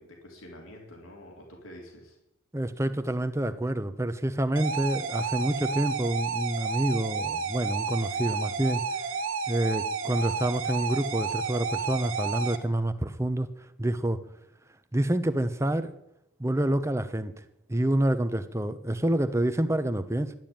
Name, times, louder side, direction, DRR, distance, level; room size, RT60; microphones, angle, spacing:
voice 1, 0.0-2.2, left 1 dB, 85° left, 0 dB, 3.9 m, -47 dB
voice 2, 2.5-8.8 9.5-13.5 13.8-14.2 14.9-16.0 16.4-17.3 17.7-20.4, right 1 dB, 15° right, 11 dB, 0.8 m, -27 dB
sound 1, 4.6-12.6, right 4 dB, 80° right, 1.4 m, -31 dB
12.0 x 11.0 x 8.9 m, 0.85 s
head